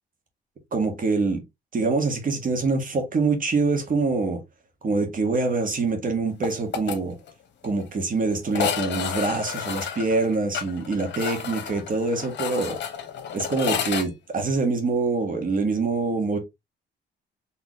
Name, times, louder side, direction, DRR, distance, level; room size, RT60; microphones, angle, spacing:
voice 1, 0.7-1.4 1.7-4.4 4.8-7.2 7.6-12.8 13.3-16.4, right 3 dB, 45° right, 1.7 m, -25 dB
sound 1, 6.4-7.0 7.3-7.4 7.6-7.7 8.5-14.1, left 8 dB, 65° left, 1.2 m, -30 dB
4.3 x 3.4 x 3.1 m
cardioid pair, 90°, 20 cm